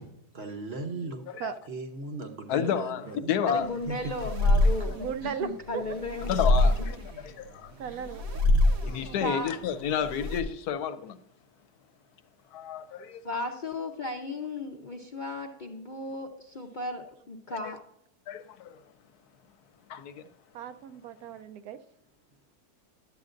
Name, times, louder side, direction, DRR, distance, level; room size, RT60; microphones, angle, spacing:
voice 1, 0.3-1.2 1.7-3.3 3.9-4.0 7.9-8.0, right 3 dB, 50° right, 1.0 m, -37 dB
voice 2, 2.5-3.7 6.3-7.0 7.2-7.7 8.8-11.2 12.5-13.2 18.3-18.8 19.9-20.2, left 8 dB, 75° left, 1.1 m, -30 dB
voice 3, 3.5-5.1 5.4-6.4 7.1-7.3 9.2-9.5 13.2-17.8, left 2 dB, 45° left, 0.6 m, -35 dB
sound 1, 3.5-10.4, left 2 dB, 90° right, 1.9 m, -27 dB
voice 4, 5.0-5.8 7.8-8.2 9.0-9.4 20.5-21.8, right 7 dB, 75° right, 1.0 m, -36 dB
11.0 x 8.3 x 2.5 m
omnidirectional pair, 1.7 m